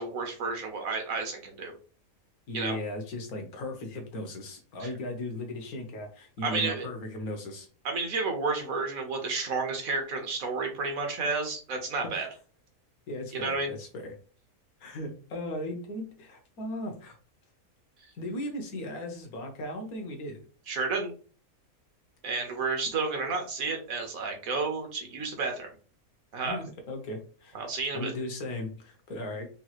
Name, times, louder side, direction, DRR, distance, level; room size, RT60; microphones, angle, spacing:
voice 1, 0.0-1.7 2.5-2.8 4.8-4.9 6.4-6.9 7.8-12.3 13.3-13.7 20.7-21.1 22.2-25.7 26.3-26.6 27.5-28.1, right 4 dB, 70° right, 3 dB, 1.5 m, -31 dB
voice 2, 2.5-7.7 12.0-12.2 13.1-14.1 14.8-17.1 18.1-20.4 26.4-27.6 27.9-29.5, left 1 dB, 80° left, 4 dB, 1.5 m, -37 dB
5.3 x 2.4 x 3.0 m, 0.39 s
omnidirectional pair, 1.5 m